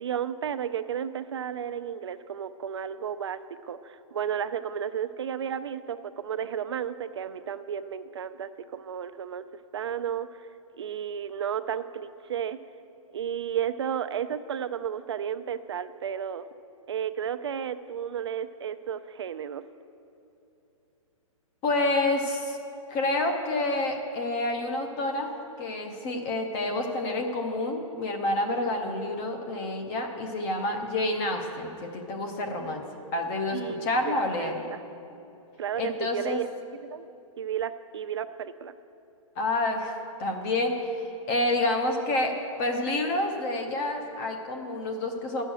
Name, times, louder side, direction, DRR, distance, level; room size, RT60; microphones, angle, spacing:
voice 1, 0.0-9.4 9.7-10.5 10.8-12.6 13.1-16.5 16.9-19.6 33.5-34.8 35.6-36.5 36.8-37.1 37.4-38.7, right 8 dB, 50° right, 12 dB, 0.4 m, -33 dB
voice 2, 21.6-22.6 22.9-25.3 25.6-32.8 33.1-34.7 35.8-36.4 39.4-42.3 42.6-45.4, left 2 dB, 15° left, 3 dB, 0.4 m, -28 dB
10.5 x 6.3 x 8.7 m, 2.8 s
hypercardioid pair, 175°, 17 cm